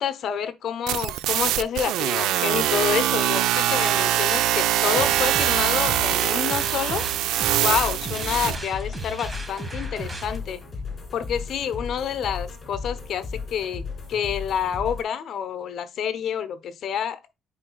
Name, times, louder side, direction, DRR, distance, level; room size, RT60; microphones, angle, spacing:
voice 1, 0.0-7.1 7.6-10.6 11.1-17.2, left 8 dB, 65° left, 0.9 m, -28 dB
sound 1, 0.9-8.6, right 12 dB, 85° right, 0.4 m, -23 dB
sound 2, 4.9-10.4, right 1 dB, 20° right, 1.4 m, -36 dB
sound 3, 7.4-15.0, left 4 dB, 30° left, 2.7 m, -36 dB
8.8 x 4.8 x 2.3 m
cardioid pair, 105°, 0 cm